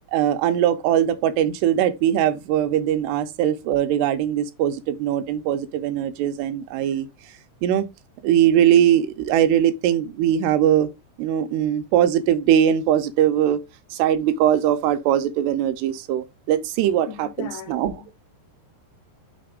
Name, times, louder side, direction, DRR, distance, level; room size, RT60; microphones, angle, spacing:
voice 1, 0.1-7.1 7.6-7.9 8.2-10.9 11.2-13.6 13.9-18.0, right 10 dB, 80° right, 2.7 m, -21 dB
voice 2, 17.1-18.2, left 11 dB, 85° left, 2.4 m, -39 dB
6.1 x 3.4 x 5.0 m
omnidirectional pair, 5.0 m